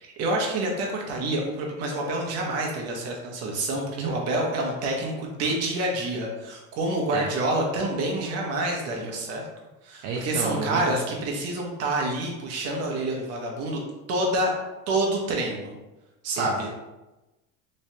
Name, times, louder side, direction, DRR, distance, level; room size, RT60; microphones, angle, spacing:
voice 1, 0.0-9.4 9.8-13.8 14.1-14.5 14.9-15.7 16.2-16.7, right 2 dB, 40° right, -1 dB, 1.0 m, -27 dB
voice 2, 10.0-10.8 16.4-16.7, right 4 dB, 65° right, -2 dB, 0.7 m, -31 dB
3.1 x 3.1 x 2.8 m, 1.0 s
supercardioid pair, 130°, 37 cm